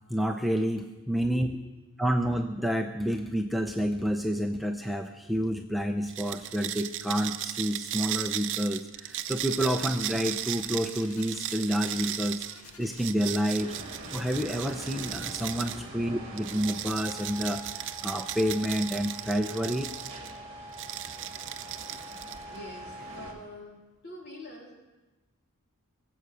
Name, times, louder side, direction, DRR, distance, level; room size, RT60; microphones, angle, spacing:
voice 1, 0.1-1.5 2.0-12.4 12.8-13.7 14.1-19.9 21.4-21.5, equal, ahead, 3 dB, 0.5 m, -29 dB
sound 1, 6.1-15.8 16.4-20.3 20.7-22.6, right 12 dB, 55° right, 0.7 m, -36 dB
sound 2, 8.9-13.9, left 3 dB, 80° left, 1.9 m, -51 dB
sound 3, 13.6-23.3, right 1 dB, 30° right, 2.8 m, -43 dB
voice 2, 22.5-24.7, left 1 dB, 45° left, -2 dB, 3.5 m, -46 dB
22.5 x 7.7 x 6.7 m, 1.1 s
head